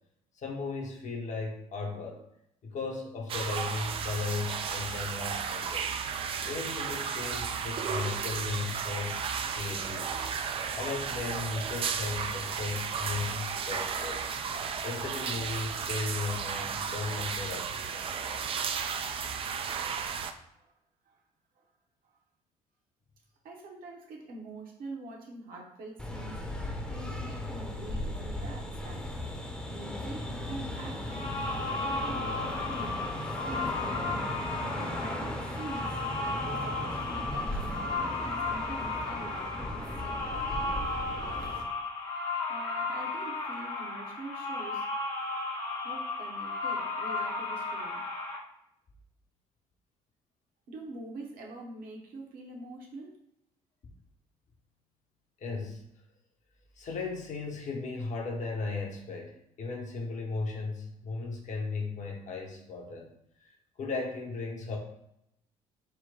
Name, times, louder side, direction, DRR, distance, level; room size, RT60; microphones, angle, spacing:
voice 1, 0.4-2.2 2.6-5.9 6.4-9.2 9.6-10.3 10.7-14.3 14.8-18.0 20.0-20.1 53.8-53.9 55.4-55.8 56.8-63.1 63.4-64.8, left 4 dB, 40° left, 1 dB, 0.9 m, -36 dB
sound 1, 3.3-20.3, right 6 dB, 30° right, 0.3 m, -34 dB
voice 2, 23.4-26.4 26.9-29.2 29.6-33.1 33.5-34.3 34.8-37.8 38.2-41.5 42.5-44.8 45.8-48.0 50.7-53.2, right 2 dB, 50° right, 0 dB, 0.9 m, -45 dB
sound 2, 26.0-41.6, left 1 dB, 5° left, 0.8 m, -37 dB
sound 3, 31.0-48.4, left 3 dB, 80° left, 0.7 m, -34 dB
4.3 x 2.1 x 3.9 m, 0.78 s
figure-of-eight pair, 50°, 18 cm